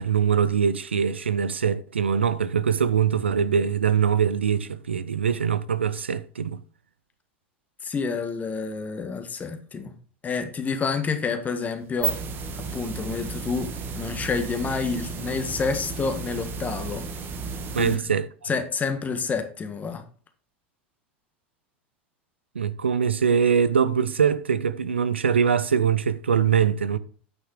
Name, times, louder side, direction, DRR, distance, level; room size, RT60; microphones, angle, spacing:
voice 1, 0.0-6.6 17.7-18.3 22.5-27.0, right 7 dB, 90° right, 0.6 m, -23 dB
voice 2, 7.8-9.9 10.2-12.2 12.6-17.0 17.8-18.0 18.5-20.0, left 5 dB, 25° left, 1.7 m, -29 dB
sound 1, 11.8-18.0, right 5 dB, 35° right, 1.5 m, -33 dB
9.2 x 5.9 x 4.9 m
hypercardioid pair, 85°, 6 cm